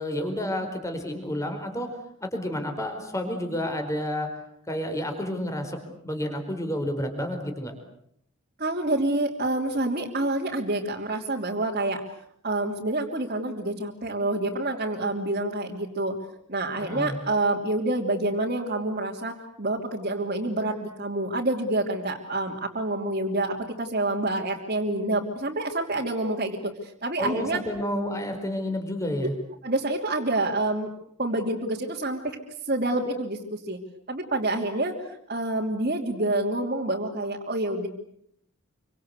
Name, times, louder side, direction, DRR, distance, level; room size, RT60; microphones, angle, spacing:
voice 1, 0.0-1.9 2.2-4.3 4.7-7.7 16.8-17.2 27.2-29.3, left 1 dB, 15° left, 5 dB, 4.7 m, -30 dB
voice 2, 8.6-12.0 12.4-16.1 16.5-27.6 29.2-29.3 29.6-30.9 31.2-32.4 32.7-33.8 34.1-37.9, right 2 dB, 40° right, -2 dB, 3.1 m, -27 dB
28.0 x 25.5 x 8.3 m, 0.71 s
head